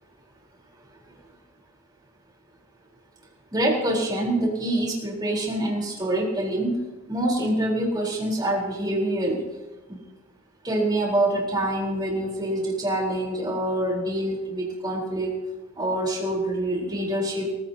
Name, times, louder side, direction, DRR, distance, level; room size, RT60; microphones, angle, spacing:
voice 1, 3.5-6.8 7.1-9.4 9.9-10.0 10.6-15.4 15.8-17.5, right 1 dB, 20° right, -2 dB, 4.0 m, -25 dB
23.5 x 15.5 x 2.9 m, 1.2 s
head